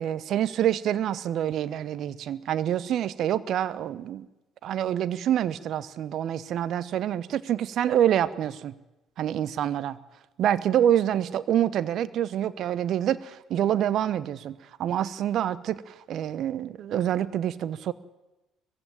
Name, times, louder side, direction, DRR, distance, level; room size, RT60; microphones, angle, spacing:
voice 1, 0.0-4.3 4.6-8.7 9.2-10.0 10.4-17.9, right 10 dB, 55° right, 17 dB, 1.0 m, -26 dB
20.5 x 15.5 x 9.0 m, 1.0 s
hypercardioid pair, 55°, 0 cm